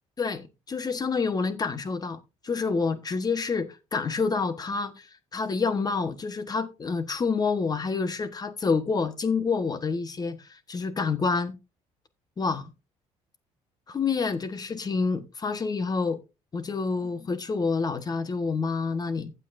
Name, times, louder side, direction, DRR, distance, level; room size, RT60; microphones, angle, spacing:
voice 1, 0.2-11.5 12.4-12.7 13.9-16.2 16.5-19.3, left 4 dB, 30° left, 1.4 m, -28 dB
14.5 x 8.0 x 2.6 m
cardioid pair, 100°, 12 cm